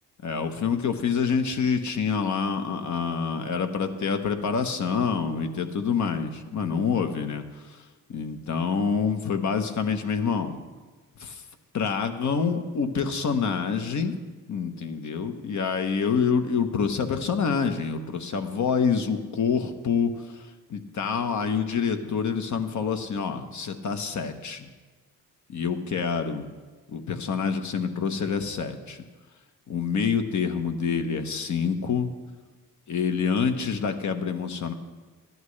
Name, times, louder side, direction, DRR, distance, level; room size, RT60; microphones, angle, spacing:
voice 1, 0.2-7.8 8.1-10.6 11.2-11.4 11.7-14.1 14.5-20.4 20.7-24.7 25.5-26.5 26.9-29.0 29.7-32.1 32.9-34.7, left 6 dB, 45° left, 7 dB, 1.1 m, -27 dB
14.0 x 10.5 x 3.2 m, 1.3 s
cardioid pair, 85°, 39 cm